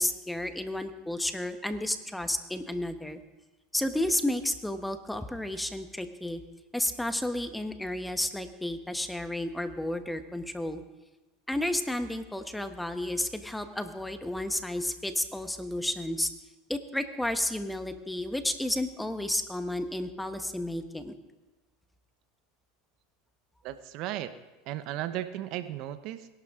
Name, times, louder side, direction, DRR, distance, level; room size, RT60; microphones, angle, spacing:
voice 1, 0.0-3.2 3.7-6.4 6.7-10.8 11.5-16.3 16.7-21.1, left 1 dB, 5° left, 8 dB, 1.2 m, -32 dB
voice 2, 23.6-24.3 24.7-26.3, right 13 dB, 60° right, 12 dB, 0.9 m, -35 dB
21.5 x 11.5 x 3.7 m, 1.1 s
hypercardioid pair, 100°, 0 cm